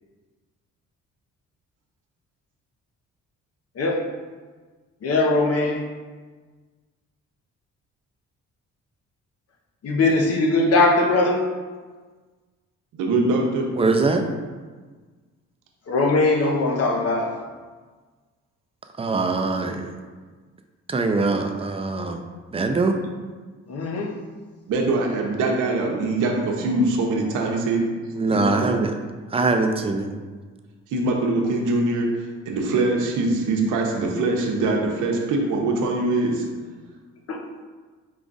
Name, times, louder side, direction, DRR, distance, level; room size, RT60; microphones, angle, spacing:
voice 1, 5.0-5.8 9.8-11.4 15.9-17.4 23.7-24.1 37.3-37.4, left 2 dB, 55° left, 1 dB, 0.8 m, -20 dB
voice 2, 12.9-13.7 24.7-27.9 28.3-28.7 30.9-32.1 32.5-36.5, right 2 dB, 90° right, 1 dB, 0.8 m, -23 dB
voice 3, 13.8-14.2 19.0-20.0 20.9-22.2 22.5-23.0 28.1-29.0 29.3-30.1, right 3 dB, 20° right, 4 dB, 0.4 m, -22 dB
5.0 x 2.4 x 3.9 m, 1.4 s
cardioid pair, 90°, 30 cm